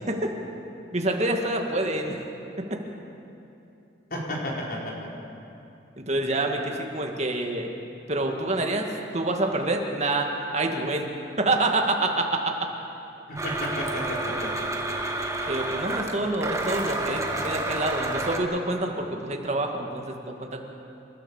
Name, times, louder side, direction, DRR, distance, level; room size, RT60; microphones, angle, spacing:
voice 1, 0.9-2.2 2.7-2.8 6.0-7.7 8.1-8.9 9.1-12.7 15.5-20.6, right 2 dB, 35° right, 2 dB, 2.0 m, -27 dB
voice 2, 4.1-5.1 13.3-14.8, equal, 50° left, -3 dB, 4.6 m, -32 dB
Domestic sounds home sounds, 13.4-18.4, right 2 dB, 15° right, 1.6 m, -30 dB
28.0 x 13.5 x 7.2 m, 2.8 s
head